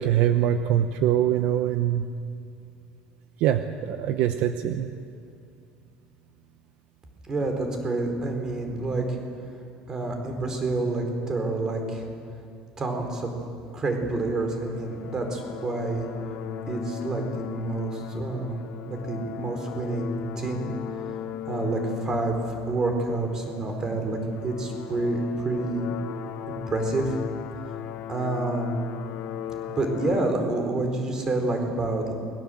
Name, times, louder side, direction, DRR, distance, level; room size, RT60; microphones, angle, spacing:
voice 1, 0.0-2.0 3.4-4.9, right 10 dB, 55° right, 8 dB, 1.1 m, -23 dB
voice 2, 7.3-9.2 9.9-12.0 12.8-13.3 13.7-16.1 16.7-18.6 18.9-20.7 21.4-25.9 26.5-27.2 28.1-28.8 29.7-32.1, right 2 dB, 20° right, 4 dB, 4.1 m, -28 dB
sound 1, 13.7-30.3, left 9 dB, 55° left, 1.2 m, -37 dB
28.5 x 22.0 x 7.8 m, 2.4 s
cardioid pair, 165°, 3 cm